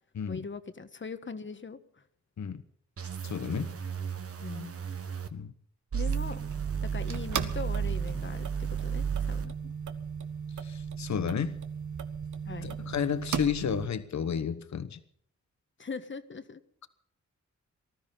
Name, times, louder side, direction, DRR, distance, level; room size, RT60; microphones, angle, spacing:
voice 1, 0.3-2.0 4.4-4.7 5.9-6.4 6.8-8.5 8.8-9.7 12.4-12.8 15.8-16.6, left 4 dB, 40° left, 11 dB, 1.4 m, -40 dB
sound 1, 3.0-5.3 5.9-9.5, right 7 dB, 50° right, 1.6 m, -34 dB
voice 2, 3.2-3.7 5.3-5.5 10.6-11.6 12.6-15.0, left 7 dB, 70° left, 12 dB, 1.1 m, -32 dB
sound 2, 6.1-13.9, right 7 dB, 80° right, 1.4 m, -37 dB
19.5 x 13.5 x 5.4 m, 0.64 s
wide cardioid pair, 90°, 29 cm